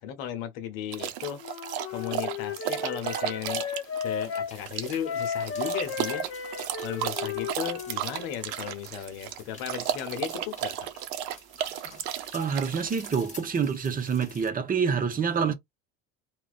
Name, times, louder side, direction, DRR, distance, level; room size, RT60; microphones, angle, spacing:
voice 1, 0.0-1.4 1.9-3.7 4.0-6.5 6.8-10.9 15.4-15.5, left 9 dB, 80° left, 0.8 m, -35 dB
sound 1, 0.9-13.4, right 11 dB, 80° right, 0.6 m, -34 dB
Wind instrument woodwind instrument, 1.4-4.5 5.0-8.3, left 6 dB, 45° left, 0.7 m, -34 dB
sound 2, 4.5-14.5, left 3 dB, 20° left, 1.2 m, -50 dB
voice 2, 12.3-15.5, right 6 dB, 25° right, 0.8 m, -27 dB
2.5 x 2.2 x 2.3 m
supercardioid pair, 80°, 32 cm